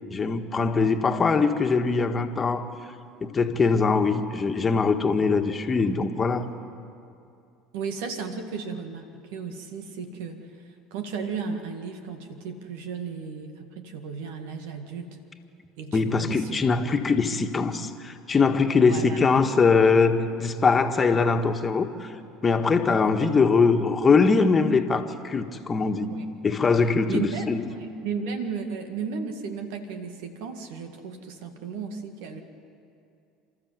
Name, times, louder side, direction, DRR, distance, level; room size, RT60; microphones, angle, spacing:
voice 1, 0.1-2.6 3.2-6.4 15.9-22.1 22.4-26.1 26.4-27.6, left 4 dB, 30° left, 6 dB, 1.7 m, -22 dB
voice 2, 7.7-15.2 15.8-16.6 18.8-19.2 26.1-26.3 27.1-32.4, right 5 dB, 75° right, 6 dB, 1.9 m, -34 dB
30.0 x 13.5 x 8.1 m, 2.5 s
hypercardioid pair, 75°, 0 cm